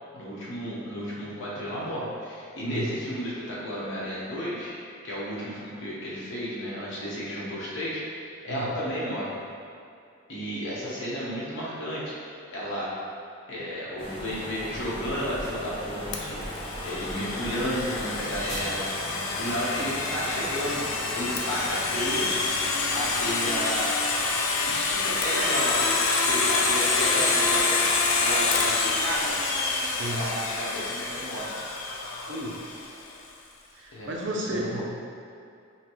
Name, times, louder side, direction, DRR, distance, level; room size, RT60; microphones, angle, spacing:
voice 1, 0.1-4.7 5.0-9.4 10.3-12.9 13.5-19.1 19.4-20.8 21.1-22.3 22.9-23.9 24.7-27.8 28.2-29.4 30.1-31.6 33.9-34.1 34.4-34.8, equal, 65° left, -7 dB, 1.0 m, -32 dB
sound 1, 14.0-23.8, equal, 25° left, 0.5 m, -39 dB
sound 2, 14.1-19.2, right 1 dB, 25° right, 1.4 m, -42 dB
Domestic sounds home sounds, 16.1-32.9, left 3 dB, 90° left, 0.4 m, -27 dB
voice 2, 29.9-30.3 32.3-32.8 33.7-34.8, right 1 dB, 60° right, -2 dB, 0.6 m, -33 dB
5.6 x 2.2 x 3.0 m, 2.4 s
head